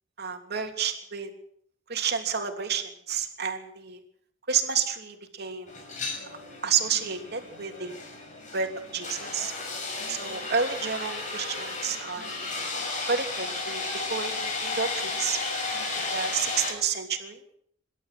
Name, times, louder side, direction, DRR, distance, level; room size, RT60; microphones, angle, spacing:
voice 1, 0.2-1.3 1.9-4.0 4.5-5.7 6.3-8.0 8.5-9.5 10.1-12.3 13.0-13.8 14.1-15.4 15.9-17.4, right 6 dB, 60° right, 5 dB, 3.1 m, -30 dB
sound 1, 5.7-16.7, left 3 dB, 45° left, 6.4 m, -34 dB
26.0 x 12.5 x 7.9 m, 0.66 s
head